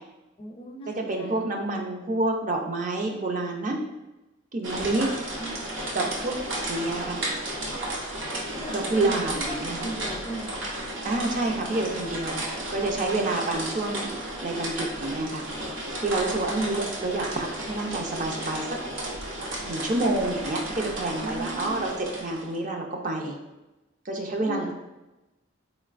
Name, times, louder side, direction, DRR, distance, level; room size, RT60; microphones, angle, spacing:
voice 1, 0.4-1.4 5.4-5.5 8.5-10.7 21.2-21.9 24.4-24.7, right 1 dB, 30° left, 1 dB, 0.4 m, -37 dB
voice 2, 1.0-3.8 4.5-5.1 5.9-6.4 6.7-7.2 8.7-9.9 11.0-12.4 12.7-14.1 14.4-15.5 16.0-18.8 19.6-23.4 24.1-24.7, right 2 dB, 40° right, 1 dB, 0.4 m, -28 dB
sound 1, 4.6-22.6, right 1 dB, 75° right, 0.8 m, -33 dB
3.8 x 3.1 x 2.4 m, 1.0 s
head